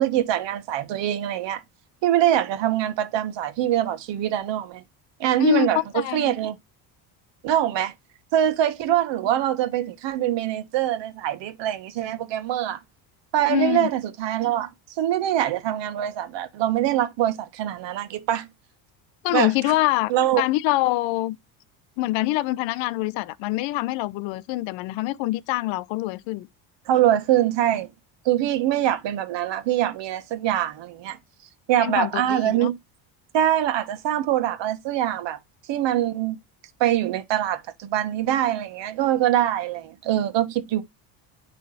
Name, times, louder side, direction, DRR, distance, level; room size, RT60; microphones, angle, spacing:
voice 1, 0.0-1.6 2.0-4.8 5.2-5.8 6.1-6.6 7.4-7.9 8.3-12.8 13.3-14.7 15.0-18.5 19.3-19.5 20.1-20.4 26.9-27.9 28.2-31.2 31.7-32.8 33.3-35.4 35.7-36.4 36.8-40.8, right 12 dB, 60° right, 1.3 m, -23 dB
voice 2, 5.4-6.3 13.5-13.9 19.2-20.1 20.4-21.4 22.0-26.5 31.8-32.7, left 18 dB, 70° left, 0.7 m, -25 dB
9.3 x 3.3 x 4.0 m
supercardioid pair, 105°, 49 cm